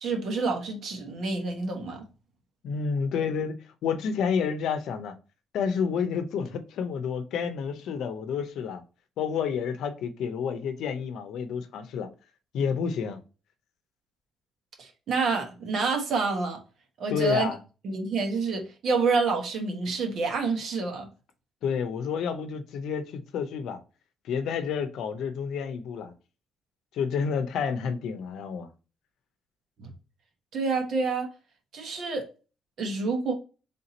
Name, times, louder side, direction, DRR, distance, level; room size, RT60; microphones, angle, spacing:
voice 1, 0.0-2.1 14.8-16.6 17.0-17.5 17.8-21.1 29.8-29.9 30.5-31.3 31.7-32.2 32.8-33.3, right 4 dB, 65° right, 1.2 m, -28 dB
voice 2, 2.6-3.5 3.8-5.1 5.5-8.8 9.2-12.1 12.5-13.2 17.1-17.6 21.6-23.8 24.2-26.1 26.9-28.7, left 6 dB, 80° left, 0.6 m, -29 dB
3.6 x 2.8 x 3.8 m
cardioid pair, 90°, 0 cm